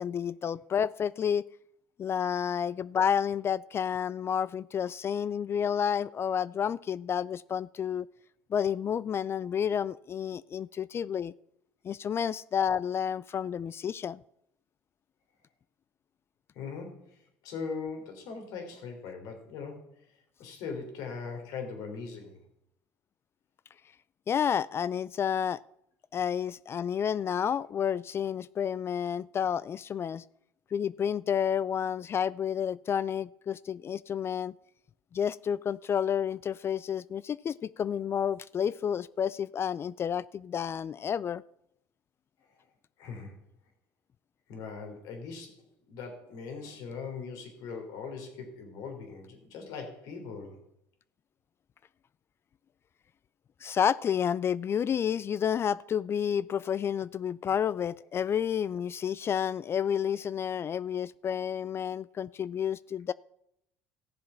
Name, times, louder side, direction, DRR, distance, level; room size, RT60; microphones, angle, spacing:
voice 1, 0.0-1.4 2.0-8.1 8.5-11.3 11.8-14.2 24.3-25.6 26.1-30.2 30.7-34.5 35.1-41.4 53.6-63.1, left 8 dB, 40° left, 20 dB, 0.3 m, -30 dB
voice 2, 16.6-17.2 17.4-19.8 20.4-22.4 43.0-43.4 44.5-45.6 45.9-50.6, left 5 dB, 70° left, 4 dB, 3.4 m, -40 dB
15.0 x 7.4 x 5.7 m, 0.75 s
supercardioid pair, 80°, 7 cm